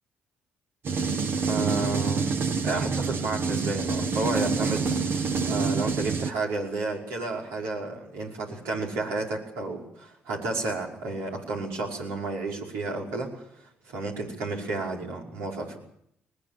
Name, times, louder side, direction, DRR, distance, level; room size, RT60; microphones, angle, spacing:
sound 1, 0.9-6.3, right 4 dB, 60° right, 1.7 m, -27 dB
voice 1, 1.5-2.3 2.6-4.9 5.5-13.5 13.9-15.8, right 3 dB, 85° right, -1 dB, 5.4 m, -31 dB
20.5 x 20.0 x 7.5 m, 0.72 s
supercardioid pair, 60°, 4 cm